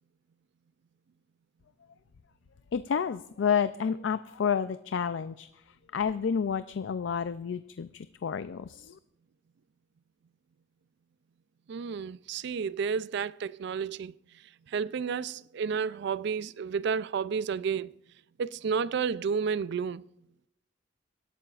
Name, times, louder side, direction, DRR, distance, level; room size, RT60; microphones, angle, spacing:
voice 1, 2.7-5.5 5.9-8.9, left 7 dB, 75° left, 0.4 m, -30 dB
voice 2, 11.7-14.1 14.7-17.9 18.4-20.0, right 6 dB, 65° right, 0.4 m, -31 dB
25.5 x 11.5 x 2.4 m
head